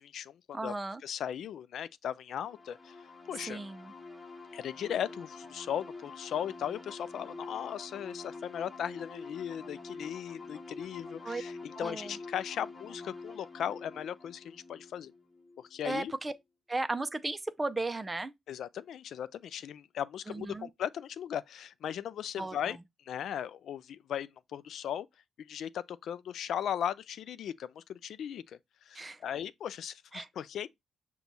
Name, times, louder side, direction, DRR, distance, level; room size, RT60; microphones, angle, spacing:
voice 1, 0.0-0.7 1.0-3.0 3.3-3.6 4.5-15.1 15.6-16.1 18.5-22.8 23.0-25.1 25.4-30.7, left 9 dB, 75° left, 0.3 m, -37 dB
voice 2, 0.5-1.0 3.4-3.9 11.2-11.4 11.7-12.2 15.8-16.3 16.7-18.3 20.3-20.7 22.4-22.8 28.9-29.2 30.1-30.3, right 2 dB, 25° right, 0.5 m, -35 dB
sound 1, 2.4-15.9, left 3 dB, 20° left, 1.0 m, -47 dB
5.9 x 2.3 x 3.9 m
cardioid pair, 65°, 0 cm